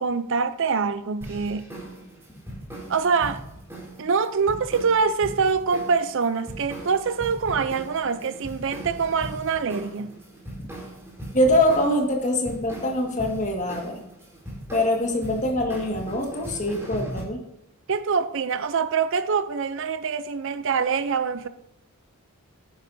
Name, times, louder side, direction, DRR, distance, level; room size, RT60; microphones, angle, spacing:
voice 1, 0.0-1.7 2.9-3.4 4.0-10.2 17.9-21.5, right 5 dB, 60° right, 0.5 m, -24 dB
sound 1, 1.2-17.2, right 1 dB, 10° right, 4.0 m, -39 dB
voice 2, 11.3-14.0 14.7-17.4, left 1 dB, 35° left, 1.8 m, -24 dB
11.0 x 9.5 x 2.7 m
head